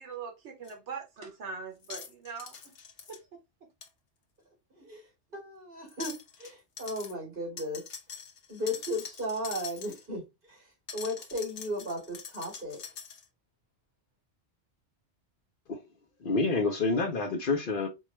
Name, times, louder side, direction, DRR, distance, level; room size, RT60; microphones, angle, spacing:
voice 1, 0.0-2.5 3.1-3.2, right 5 dB, 75° right, 1.2 m, -41 dB
sound 1, 0.7-0.8 1.8-3.2 3.8-3.9 5.9-6.5 6.8-7.1 7.6-10.1 10.9-13.2, left 6 dB, 75° left, 1.1 m, -44 dB
voice 2, 5.3-6.1 6.4-7.8 8.5-10.2 10.5-10.6 10.9-12.8, left 1 dB, 50° right, 2.8 m, -35 dB
voice 3, 16.2-17.9, left 3 dB, 55° left, 0.8 m, -28 dB
4.5 x 2.4 x 3.1 m
omnidirectional pair, 1.2 m